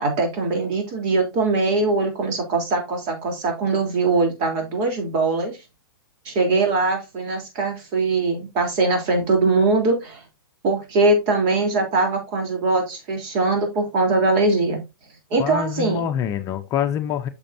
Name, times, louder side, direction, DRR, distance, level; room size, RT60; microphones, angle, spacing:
voice 1, 0.0-5.6 6.3-10.2 10.6-14.8 15.3-16.0, right 3 dB, 40° right, 3.3 m, -21 dB
voice 2, 15.4-17.3, left 9 dB, 30° left, 0.7 m, -25 dB
8.7 x 6.2 x 2.7 m
hypercardioid pair, 130°, 12 cm